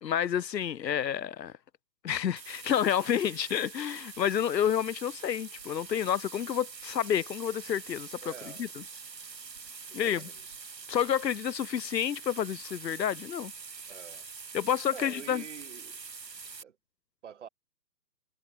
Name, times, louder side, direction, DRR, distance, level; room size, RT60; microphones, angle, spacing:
voice 1, 0.0-1.5 2.0-8.2 8.6-8.8 9.9-10.3 10.9-13.5 14.5-15.4, left 9 dB, 85° left, 0.9 m, -29 dB
sound 1, 2.4-16.6, right 5 dB, 85° right, 5.4 m, -45 dB
voice 2, 8.2-8.7 9.9-10.6 13.9-14.3 14.9-16.0 16.6-16.8 17.2-17.5, right 8 dB, 45° right, 3.3 m, -47 dB
hypercardioid pair, 165°, 49 cm